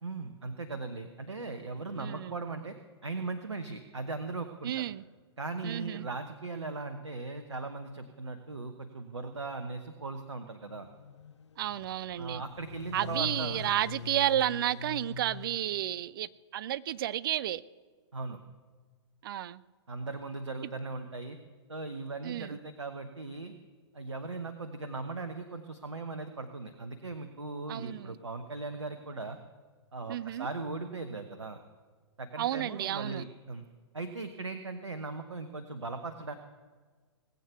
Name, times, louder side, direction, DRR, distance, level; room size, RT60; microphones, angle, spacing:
voice 1, 0.0-2.8 3.0-4.8 5.4-10.9 12.2-13.6 18.1-18.4 19.9-21.4 21.7-23.5 23.9-29.4 29.9-31.6 32.2-33.6 33.9-36.3, right 3 dB, 85° right, 8 dB, 1.0 m, -38 dB
voice 2, 1.9-2.4 4.6-5.0 5.6-6.1 11.6-12.4 12.9-17.6 19.2-19.6 22.2-22.6 27.7-28.2 30.1-30.5 32.4-33.3, right 12 dB, 50° right, 20 dB, 0.5 m, -32 dB
sound 1, 10.7-15.8, left 4 dB, 80° left, 0.7 m, -43 dB
19.5 x 8.4 x 6.9 m, 1.5 s
figure-of-eight pair, 110°, 15 cm